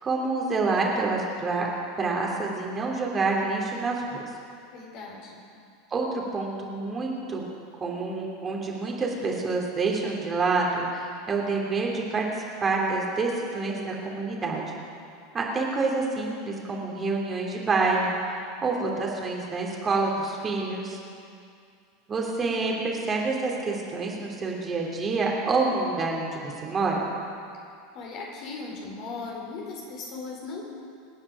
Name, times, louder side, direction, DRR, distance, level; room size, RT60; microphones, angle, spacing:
voice 1, 0.0-1.7 2.0-4.2 5.9-7.4 7.8-12.2 12.6-14.6 15.3-21.0 22.1-27.0, right 3 dB, 25° right, -2 dB, 3.2 m, -27 dB
voice 2, 4.7-5.4 22.4-23.0 27.9-30.7, left 4 dB, 45° left, -2 dB, 4.5 m, -38 dB
26.0 x 9.9 x 5.1 m, 2.4 s
figure-of-eight pair, 80°, 0 cm